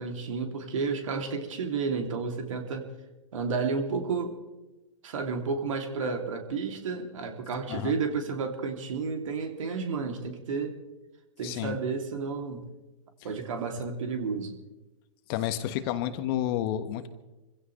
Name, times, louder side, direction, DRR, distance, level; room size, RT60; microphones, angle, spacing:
voice 1, 0.0-2.9 3.3-4.4 5.0-10.7 11.4-12.7 13.2-14.5, right 5 dB, 65° right, 4 dB, 2.9 m, -31 dB
voice 2, 11.4-11.8 15.3-17.1, left 11 dB, 45° left, 10 dB, 1.4 m, -30 dB
27.0 x 16.0 x 3.3 m, 1.1 s
hypercardioid pair, 115°, 18 cm